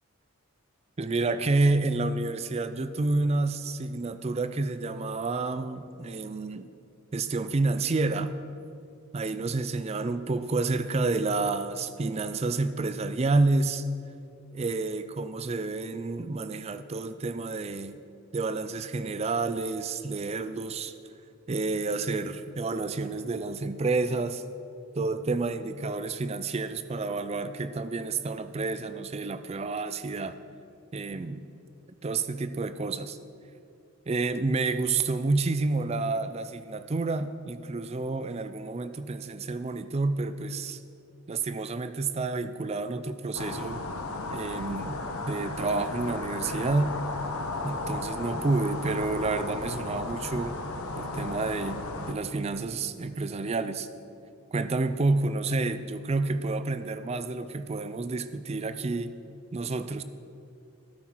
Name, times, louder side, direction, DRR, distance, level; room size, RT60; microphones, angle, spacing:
voice 1, 1.0-6.7 7.1-8.3 9.1-13.8 14.5-18.0 18.3-20.9 21.5-24.4 25.0-30.4 30.9-31.4 32.0-33.2 34.1-40.8 41.3-43.8 44.3-45.0 45.3-46.9 47.6-50.6 51.0-51.8 52.1-53.9 54.5-59.1 59.5-60.0, right 3 dB, 30° right, 11 dB, 0.4 m, -29 dB
sound 1, 43.3-52.1, left 2 dB, 80° left, 0.9 m, -35 dB
14.0 x 8.4 x 4.6 m, 2.6 s
head